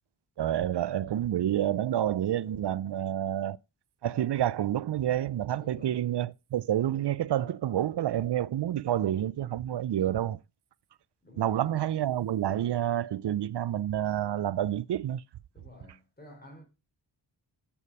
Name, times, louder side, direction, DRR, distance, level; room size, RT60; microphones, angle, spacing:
voice 1, 0.4-3.6 4.0-10.4 11.4-15.2, right 11 dB, 55° right, 0.5 m, -29 dB
voice 2, 2.9-3.2 5.6-6.1 11.2-11.8 15.5-16.6, left 1 dB, 20° left, 3.9 m, -51 dB
7.0 x 6.9 x 4.7 m
cardioid pair, 60°, 49 cm